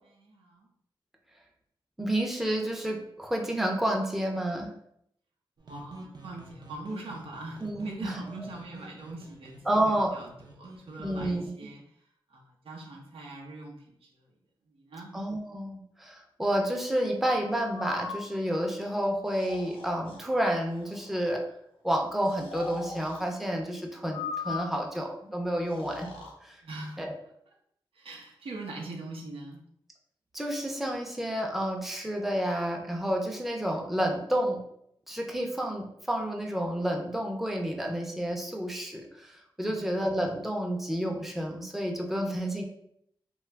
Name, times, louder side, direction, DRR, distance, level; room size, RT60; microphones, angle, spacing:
voice 1, 0.0-0.7 5.6-11.8 12.3-14.3 14.7-15.1 26.6-27.0 27.9-29.6 39.7-39.9, right 2 dB, 90° right, -1 dB, 0.7 m, -42 dB
voice 2, 2.0-4.7 7.6-8.1 9.7-10.1 11.0-11.5 15.1-21.4 21.8-26.1 26.4-26.6 27.0-27.1 30.3-34.6 35.1-42.6, right 1 dB, 5° right, 0 dB, 0.5 m, -30 dB
sound 1, 5.6-11.2, right 2 dB, 50° right, 0.6 m, -48 dB
Breathing, 17.7-18.2 19.3-20.2 20.7-21.1 22.3-23.2 24.1-25.0 25.6-26.3, left 5 dB, 90° left, 0.7 m, -39 dB
2.9 x 2.3 x 3.3 m, 0.72 s
wide cardioid pair, 80°, 9 cm